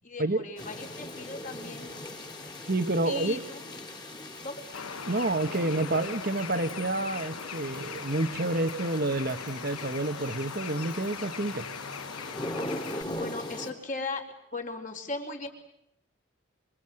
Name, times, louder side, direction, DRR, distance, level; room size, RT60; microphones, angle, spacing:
voice 1, 0.0-1.9 3.1-3.6 4.4-4.6 12.8-14.2 14.5-15.5, left 3 dB, 35° left, 3 dB, 4.1 m, -37 dB
sound 1, 0.6-13.7, left 1 dB, 20° left, 3.2 m, -41 dB
voice 2, 2.7-3.4 5.1-11.6, right 2 dB, 45° right, 7 dB, 1.3 m, -29 dB
Bird, 4.7-13.0, left 6 dB, 90° left, 1.3 m, -40 dB
27.0 x 26.5 x 7.8 m, 0.80 s
head